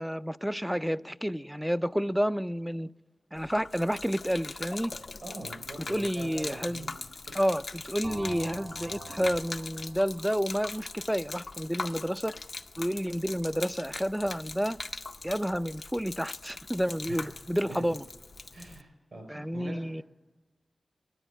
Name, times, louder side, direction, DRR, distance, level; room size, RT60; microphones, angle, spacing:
voice 1, 0.0-2.9 3.3-4.9 5.9-6.9 7.4-12.3 12.8-14.8 15.2-18.0 19.3-20.0, equal, 5° right, 16 dB, 0.3 m, -30 dB
Gurgling / Liquid, 3.4-18.8, left 3 dB, 55° left, 0.5 m, -41 dB
voice 2, 5.2-7.0 7.2-7.5 17.1-17.3 17.6-18.0 18.5-20.0, right 2 dB, 70° right, 5 dB, 4.5 m, -44 dB
sound 1, 8.0-11.8, right 2 dB, 55° right, 1.5 m, -45 dB
9.9 x 9.2 x 8.8 m, 1.2 s
cardioid pair, 50°, 0 cm